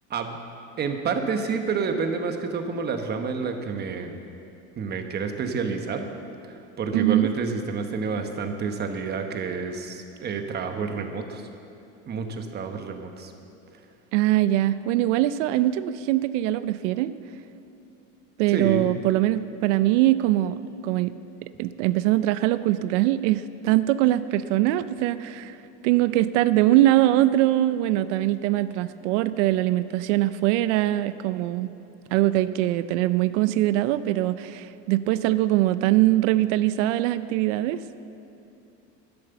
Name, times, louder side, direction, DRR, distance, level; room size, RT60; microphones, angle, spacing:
voice 1, 0.8-4.2 4.8-6.1 6.4-11.4 12.1-13.3 18.5-18.9, right 5 dB, 30° right, 6 dB, 1.1 m, -29 dB
voice 2, 6.9-7.3 14.1-17.1 18.4-21.1 21.6-25.6 25.8-31.7 32.1-37.8, right 15 dB, 90° right, 14 dB, 0.5 m, -22 dB
11.5 x 11.0 x 6.9 m, 2.7 s
cardioid pair, 140°, 35 cm